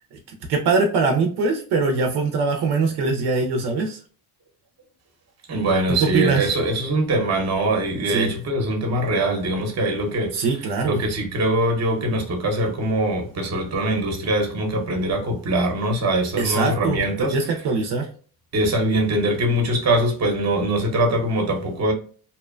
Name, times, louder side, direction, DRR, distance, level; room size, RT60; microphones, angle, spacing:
voice 1, 0.5-4.0 5.9-6.5 8.1-8.4 10.3-11.0 16.4-18.1, right 4 dB, 75° right, 0.6 m, -22 dB
voice 2, 5.5-10.4 10.8-17.4 18.5-21.9, right 1 dB, 40° right, 0.9 m, -22 dB
2.8 x 2.1 x 2.4 m
cardioid pair, 100°, 40 cm